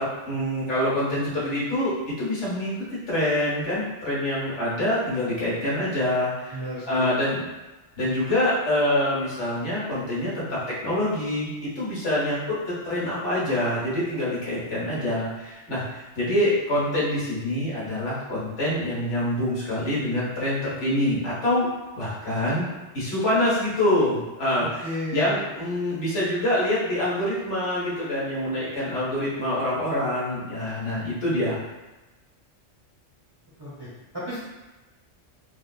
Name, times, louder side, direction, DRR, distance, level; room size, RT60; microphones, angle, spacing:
voice 1, 0.3-1.9 2.2-6.6 6.8-7.4 8.0-21.7 21.9-22.7 22.9-31.6, left 1 dB, 75° left, -8 dB, 1.4 m, -25 dB
voice 2, 6.5-7.1 24.8-25.4 33.6-33.9 34.1-34.4, equal, 25° right, -9 dB, 0.7 m, -33 dB
3.4 x 2.2 x 2.3 m, 1.1 s
omnidirectional pair, 1.2 m